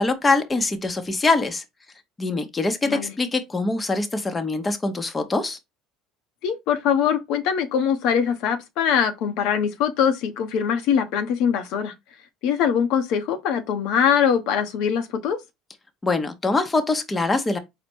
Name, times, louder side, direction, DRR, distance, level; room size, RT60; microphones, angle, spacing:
voice 1, 0.0-1.6 2.2-5.6 16.0-17.6, left 3 dB, 20° left, 0.8 m, -23 dB
voice 2, 6.4-11.9 12.4-15.4, left 8 dB, 70° left, 0.7 m, -22 dB
4.3 x 2.1 x 4.3 m
supercardioid pair, 90°, 0 cm